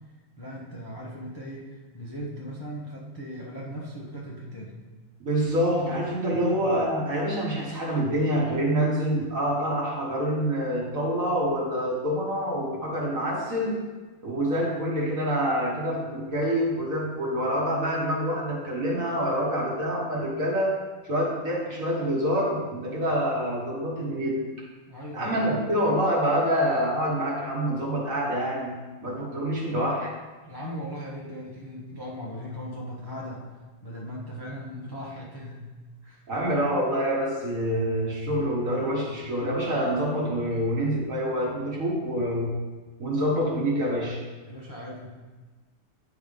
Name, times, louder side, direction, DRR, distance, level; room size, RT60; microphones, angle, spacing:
voice 1, 0.4-4.7 6.3-6.5 24.9-25.6 30.4-33.4 33.8-35.6 36.0-36.2 44.5-45.1, equal, 25° left, -5 dB, 0.5 m, -38 dB
voice 2, 5.2-13.8 14.2-20.8 21.1-24.4 25.1-28.7 29.0-30.1 36.3-42.5 43.0-44.2, equal, 45° right, -3 dB, 1.4 m, -26 dB
9.7 x 3.5 x 5.2 m, 1.3 s
omnidirectional pair, 2.4 m